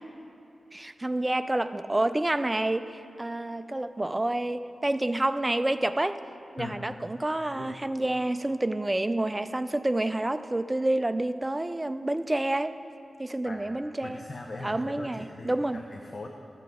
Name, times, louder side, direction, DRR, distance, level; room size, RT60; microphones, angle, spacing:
voice 1, 0.7-6.2 6.6-12.7 13.2-14.2 14.6-15.8, right 1 dB, 15° right, 11 dB, 0.3 m, -28 dB
voice 2, 6.6-7.0 7.5-7.7 13.4-13.8 14.0-16.3, left 2 dB, 45° left, 2 dB, 0.6 m, -40 dB
13.5 x 7.8 x 3.6 m, 2.8 s
wide cardioid pair, 105°, 0 cm